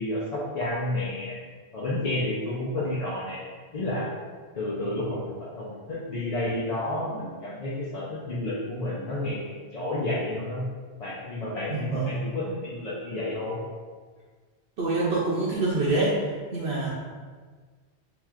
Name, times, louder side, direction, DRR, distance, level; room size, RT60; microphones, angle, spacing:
voice 1, 0.0-1.4 1.7-3.4 3.7-4.1 4.5-10.7 11.0-13.6, left 1 dB, 45° left, -6 dB, 0.6 m, -30 dB
voice 2, 11.7-12.1 14.8-16.2 16.5-16.9, right 3 dB, 75° right, -6 dB, 0.9 m, -25 dB
3.2 x 3.0 x 3.6 m, 1.5 s
omnidirectional pair, 1.1 m